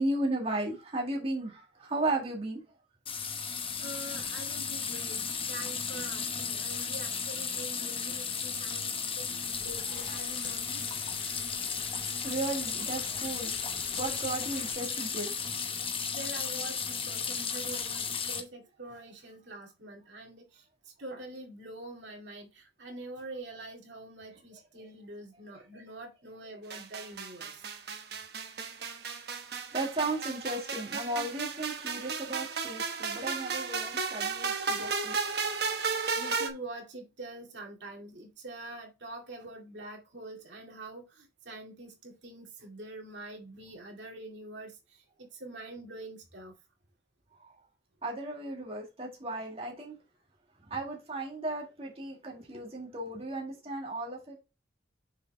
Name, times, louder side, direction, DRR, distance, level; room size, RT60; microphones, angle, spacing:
voice 1, 0.0-2.6 12.2-13.6 13.9-15.3 29.7-35.2 47.4-47.5 48.0-49.9 50.7-54.4, right 2 dB, 30° right, 1.8 m, -35 dB
sound 1, 3.1-18.4, left 6 dB, 30° left, 0.9 m, -34 dB
voice 2, 3.8-10.9 16.1-20.6 21.0-27.6 36.2-46.5, right 2 dB, 75° right, 2.2 m, -45 dB
sound 2, 9.4-14.7, left 4 dB, 85° left, 2.7 m, -48 dB
sound 3, 26.7-36.5, right 5 dB, 60° right, 1.0 m, -34 dB
6.6 x 4.7 x 3.3 m
head